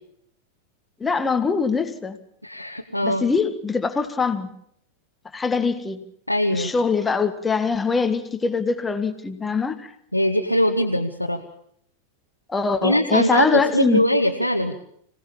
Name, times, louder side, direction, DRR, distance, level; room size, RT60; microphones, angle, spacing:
voice 1, 1.0-2.2 3.0-4.5 5.3-6.0 6.5-9.9 12.5-14.0, left 5 dB, 15° left, 9 dB, 1.7 m, -23 dB
voice 2, 2.4-3.3 6.3-6.7 10.1-11.4 12.8-14.7, equal, 90° left, 1 dB, 1.4 m, -21 dB
26.0 x 17.5 x 7.2 m, 0.69 s
figure-of-eight pair, 90°, 0 cm